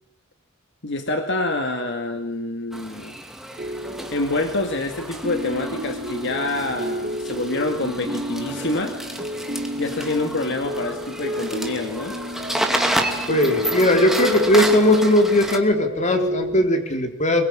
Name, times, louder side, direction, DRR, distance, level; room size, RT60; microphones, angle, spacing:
voice 1, 0.8-3.2 4.1-9.0 9.8-12.2, left 2 dB, 60° left, 5 dB, 2.2 m, -26 dB
sound 1, 2.7-15.6, right 1 dB, ahead, 2.4 m, -30 dB
sound 2, 3.6-16.7, equal, 35° right, 2.0 m, -32 dB
voice 2, 13.3-17.4, left 1 dB, 35° left, 4 dB, 3.6 m, -18 dB
23.0 x 22.5 x 9.8 m, 0.83 s
head